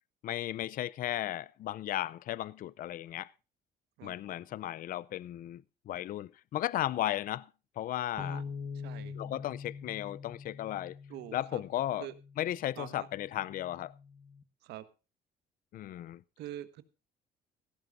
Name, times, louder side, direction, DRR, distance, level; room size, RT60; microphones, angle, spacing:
voice 1, 0.2-3.3 4.0-7.5 7.8-8.4 9.1-11.0 11.3-12.1 12.4-13.9 15.7-16.2, left 13 dB, 55° left, 0.5 m, -35 dB
sound 1, 8.2-14.4, left 5 dB, 30° left, 1.7 m, -45 dB
voice 2, 8.8-9.1 11.1-11.6 12.0-12.1 12.8-13.1 14.6-14.8 16.4-16.8, right 13 dB, 85° right, 1.3 m, -44 dB
16.5 x 14.5 x 2.6 m
cardioid pair, 110°, 17 cm